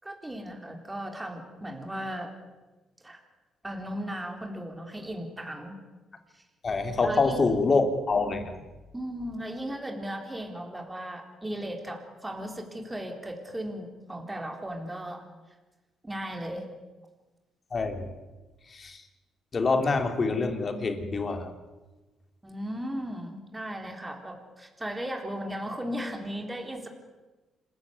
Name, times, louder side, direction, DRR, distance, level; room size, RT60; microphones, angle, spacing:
voice 1, 0.0-2.3 3.0-3.2 3.6-5.8 6.3-6.4 7.0-7.5 8.9-15.2 16.0-16.7 22.4-26.9, equal, 15° right, 3 dB, 3.8 m, -36 dB
voice 2, 6.6-8.6 17.7-18.1 18.7-19.0 19.5-21.5, left 3 dB, 40° left, 6 dB, 3.2 m, -26 dB
26.5 x 14.5 x 9.6 m, 1.2 s
cardioid pair, 90°, 0 cm